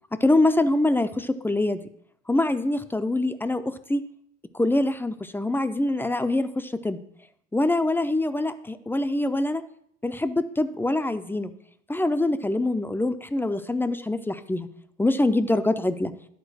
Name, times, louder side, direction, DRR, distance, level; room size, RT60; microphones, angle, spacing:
voice 1, 0.1-1.8 2.3-4.0 4.5-7.0 7.5-9.6 10.0-11.5 11.9-14.7 15.0-16.1, left 2 dB, 5° left, 11 dB, 0.5 m, -24 dB
10.5 x 4.5 x 6.1 m, 0.69 s
hypercardioid pair, 75°, 38 cm